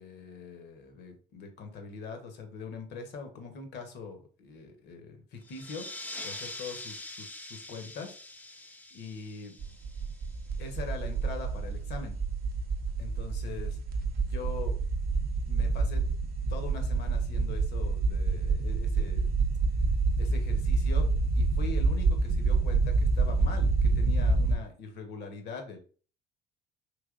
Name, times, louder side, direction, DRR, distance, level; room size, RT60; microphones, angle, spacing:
voice 1, 0.0-5.9 6.2-8.2 8.9-9.6 10.6-12.2 13.0-13.8 14.2-14.8 15.5-16.0 16.5-19.3 20.2-25.8, left 4 dB, 60° left, 5 dB, 0.8 m, -42 dB
sound 1, 5.4-10.6, left 2 dB, 10° left, 0.4 m, -44 dB
sound 2, 9.6-24.5, right 3 dB, 50° right, 0.5 m, -27 dB
3.3 x 2.9 x 2.4 m, 0.41 s
hypercardioid pair, 60°, 20 cm